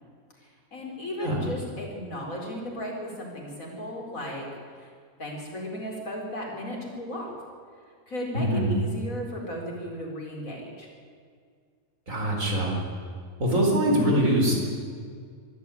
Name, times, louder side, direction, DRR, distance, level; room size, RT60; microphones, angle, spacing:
voice 1, 0.4-4.5 4.8-4.9 5.2-7.3 8.1-10.9, equal, 70° left, -1 dB, 5.0 m, -35 dB
voice 2, 8.3-8.7 12.1-12.7 13.4-14.6, right 1 dB, 65° right, -1 dB, 4.9 m, -23 dB
22.5 x 13.0 x 9.5 m, 2.1 s
omnidirectional pair, 1.5 m